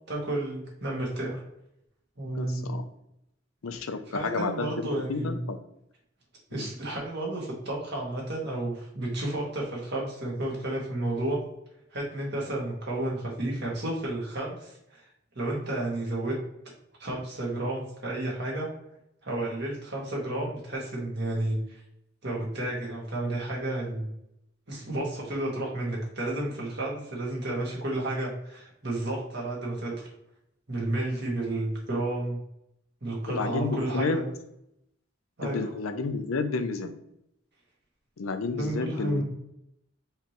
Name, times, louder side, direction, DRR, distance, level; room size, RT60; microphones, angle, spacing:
voice 1, 0.1-1.4 2.2-2.7 4.1-5.4 6.5-11.4 11.9-15.0 15.4-16.3 17.0-18.7 19.2-21.8 22.2-24.1 24.7-30.1 30.7-32.4 33.0-34.2 35.4-35.7 38.5-39.2, right 1 dB, 55° right, -3 dB, 1.8 m, -31 dB
voice 2, 2.3-2.9 3.6-5.6 6.5-6.7 33.2-34.2 35.4-37.0 38.2-39.2, left 4 dB, 85° left, 9 dB, 0.6 m, -31 dB
4.9 x 3.3 x 3.0 m, 0.78 s
head